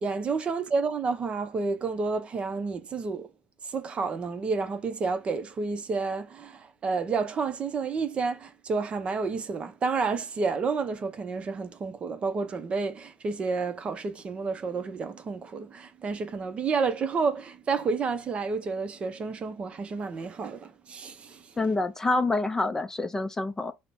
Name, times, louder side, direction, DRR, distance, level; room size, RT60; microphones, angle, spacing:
voice 1, 0.0-3.3 3.6-21.5, right 4 dB, 30° right, 0.6 m, -30 dB
voice 2, 21.6-23.7, left 2 dB, 15° left, 0.4 m, -27 dB
3.9 x 2.1 x 4.3 m
cardioid pair, 120°, 4 cm